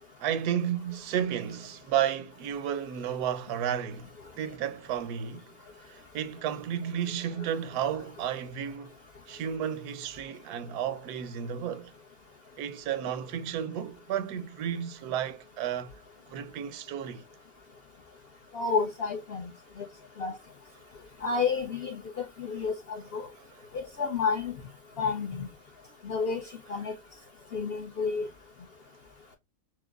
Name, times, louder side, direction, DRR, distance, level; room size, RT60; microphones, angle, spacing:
voice 1, 0.2-5.5 5.8-9.0 9.3-11.9 12.6-16.0 16.3-17.2, right 9 dB, 85° right, 1.1 m, -32 dB
voice 2, 18.5-19.5 19.8-19.9 20.2-20.4 21.2-22.0 22.4-23.3 24.0-24.5 25.0-25.5 26.0-26.4 26.7-26.9 27.5-28.3, left 5 dB, 65° left, 0.6 m, -30 dB
6.0 x 2.0 x 2.3 m
omnidirectional pair, 1.6 m